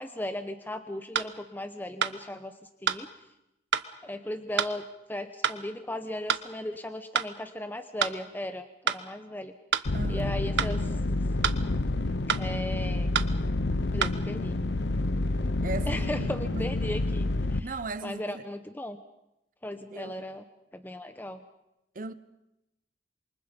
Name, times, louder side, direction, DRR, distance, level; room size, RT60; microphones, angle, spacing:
voice 1, 0.0-2.5 2.8-3.1 4.0-4.8 5.1-9.5 9.8-10.9 12.4-13.1 13.9-14.6 15.9-17.7 18.0-19.0 19.6-20.4 20.7-21.4, left 1 dB, 10° left, 0.9 m, -37 dB
sound 1, 1.1-1.3 2.0-2.2 2.9-3.0 3.7-3.9 4.6-4.7 5.4-5.6 6.3-6.5 7.1-7.3 8.0-8.2 8.9-9.0 9.7-9.9 10.6-10.7 11.4-11.6 12.3-12.5 13.1-13.3 14.0-14.2, right 7 dB, 85° right, 1.1 m, -27 dB
sound 2, 9.9-17.6, left 2 dB, 75° left, 0.9 m, -29 dB
voice 2, 9.9-10.4 15.6-16.7 17.6-18.4 19.9-20.3 21.9-22.1, right 3 dB, 50° right, 1.0 m, -37 dB
27.0 x 24.0 x 5.3 m
head